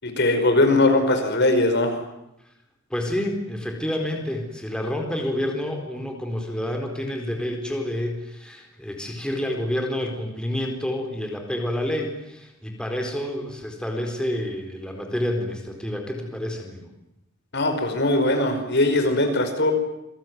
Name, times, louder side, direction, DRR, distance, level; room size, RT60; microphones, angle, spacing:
voice 1, 0.0-2.0 17.5-19.7, left 2 dB, 55° left, 6 dB, 5.2 m, -20 dB
voice 2, 2.9-16.9, left 1 dB, 5° left, 2 dB, 4.3 m, -29 dB
28.0 x 22.0 x 9.5 m, 0.88 s
head